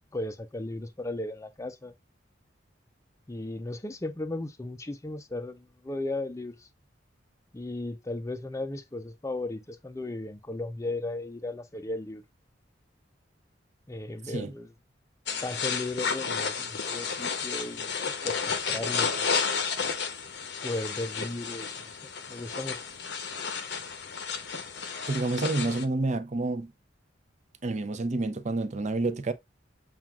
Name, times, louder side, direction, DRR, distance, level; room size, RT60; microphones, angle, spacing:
voice 1, 0.1-1.9 3.3-6.7 7.5-12.2 13.9-14.7 15.4-17.9 18.2-19.3 20.6-22.8, left 2 dB, 15° left, 0.4 m, -36 dB
sound 1, 15.3-25.8, left 5 dB, 60° left, 0.7 m, -32 dB
voice 2, 25.1-26.7 27.6-29.3, right 2 dB, 40° right, 0.5 m, -29 dB
7.2 x 2.4 x 2.3 m
head